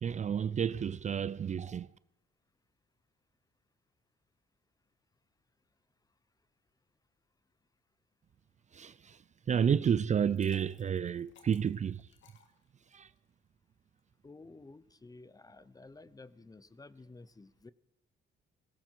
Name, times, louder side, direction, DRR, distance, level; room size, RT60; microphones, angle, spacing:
voice 1, 0.0-1.9 8.7-9.2 9.5-12.0 12.9-13.1, right 8 dB, 35° right, 0.4 m, -30 dB
Liquid, 10.1-13.2, left 6 dB, 70° left, 2.2 m, -62 dB
voice 2, 14.2-17.7, left 3 dB, 20° left, 0.7 m, -53 dB
18.0 x 16.0 x 4.6 m
cardioid pair, 90°, 20 cm